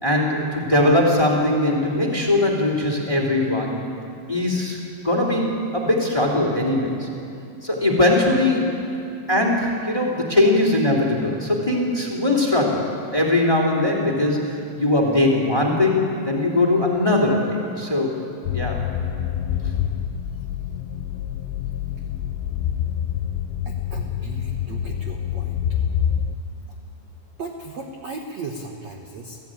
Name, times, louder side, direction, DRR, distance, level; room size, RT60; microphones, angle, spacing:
voice 1, 0.0-3.8 4.3-7.1 7.6-8.8 9.3-18.1 18.5-18.8, left 1 dB, 10° left, 0 dB, 2.0 m, -20 dB
sound 1, 18.4-26.4, left 9 dB, 80° left, 2.9 m, -26 dB
voice 2, 23.6-25.6 27.4-29.4, right 3 dB, 75° right, 2 dB, 1.6 m, -36 dB
27.5 x 15.5 x 9.0 m, 2.6 s
omnidirectional pair, 5.2 m